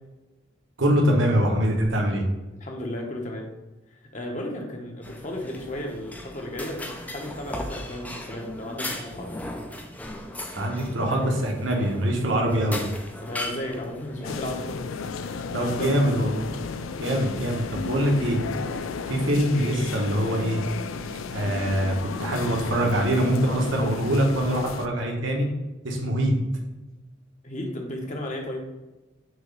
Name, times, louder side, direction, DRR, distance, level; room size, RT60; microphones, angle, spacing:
voice 1, 0.8-2.2 10.5-12.8 15.5-16.5 17.0-18.4 19.1-20.6 21.3-25.5 25.8-26.3, right 1 dB, 75° right, 0 dB, 1.2 m, -23 dB
voice 2, 2.5-3.5 3.9-9.3 13.2-14.8 15.1-16.1 27.4-28.6, left 1 dB, 35° left, 1 dB, 1.0 m, -34 dB
sound 1, 5.0-14.4, left 1 dB, 10° left, 0.5 m, -37 dB
sound 2, 14.2-24.9, left 4 dB, 85° left, 0.4 m, -33 dB
6.3 x 3.0 x 5.3 m, 1.1 s
head